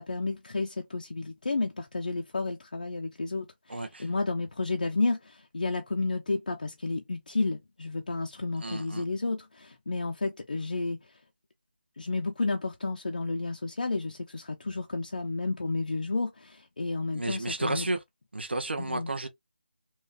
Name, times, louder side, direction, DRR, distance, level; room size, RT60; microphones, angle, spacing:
voice 1, 0.0-11.1 12.0-17.9 18.8-19.1, left 3 dB, 50° left, 0.6 m, -31 dB
voice 2, 3.7-4.0 8.6-9.0 17.1-18.0 18.3-19.3, right 2 dB, 85° right, 1.1 m, -32 dB
3.5 x 3.1 x 2.5 m
figure-of-eight pair, 175°, 6 cm